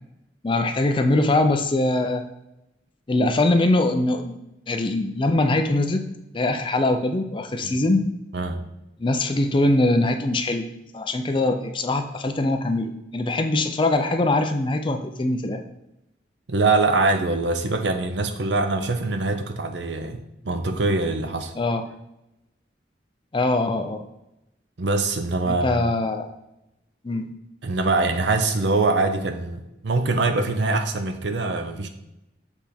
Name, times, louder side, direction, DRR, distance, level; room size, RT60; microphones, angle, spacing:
voice 1, 0.4-2.2 3.1-4.4 4.7-6.0 6.3-8.0 9.0-10.7 10.9-15.6 21.6-21.9 23.3-24.0 25.5-26.3 27.0-27.3, left 2 dB, 25° left, 7 dB, 0.4 m, -22 dB
voice 2, 16.5-21.5 24.8-25.8 27.6-31.9, right 3 dB, 65° right, 8 dB, 0.6 m, -23 dB
7.2 x 3.4 x 4.3 m, 0.90 s
head